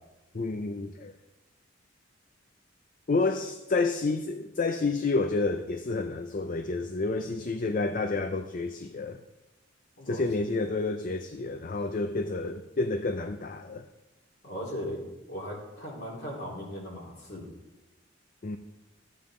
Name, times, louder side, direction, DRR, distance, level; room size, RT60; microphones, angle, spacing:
voice 1, 0.3-1.1 3.1-9.2 10.1-13.9 18.4-18.6, left 3 dB, 45° left, 8 dB, 0.5 m, -29 dB
voice 2, 14.4-15.0 15.3-17.4, equal, 60° left, -4 dB, 3.7 m, -37 dB
13.5 x 8.8 x 3.7 m, 1.0 s
head